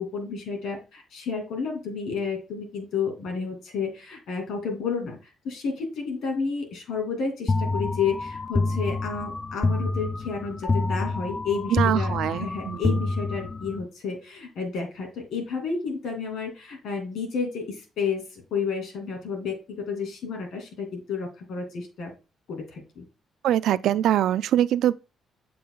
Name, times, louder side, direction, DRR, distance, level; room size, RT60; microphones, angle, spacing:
voice 1, 0.0-5.2 5.4-22.1 22.5-23.1, left 5 dB, 75° left, 2.5 m, -31 dB
sound 1, 7.5-13.9, left 3 dB, 25° left, 0.4 m, -27 dB
voice 2, 11.7-13.0 23.4-24.9, right 11 dB, 80° right, 0.3 m, -23 dB
7.5 x 5.5 x 2.3 m
cardioid pair, 90°, 0 cm